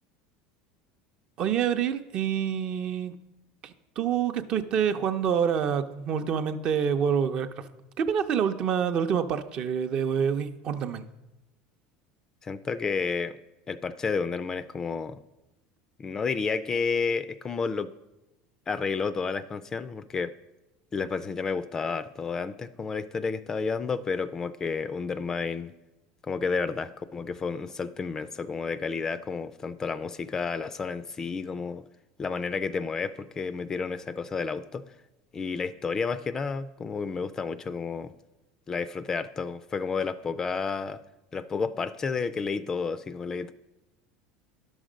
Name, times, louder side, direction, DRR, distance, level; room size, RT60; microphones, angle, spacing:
voice 1, 1.4-3.1 3.6-7.7 8.0-11.0, right 8 dB, 45° right, 9 dB, 0.6 m, -27 dB
voice 2, 12.4-13.4 13.7-15.2 16.0-17.9 18.7-20.3 20.9-25.7 26.3-31.8 32.2-34.8 35.3-38.1 38.7-41.0 41.3-43.5, left 5 dB, 25° left, 14 dB, 0.4 m, -31 dB
10.5 x 6.3 x 5.0 m, 0.97 s
supercardioid pair, 130°, 2 cm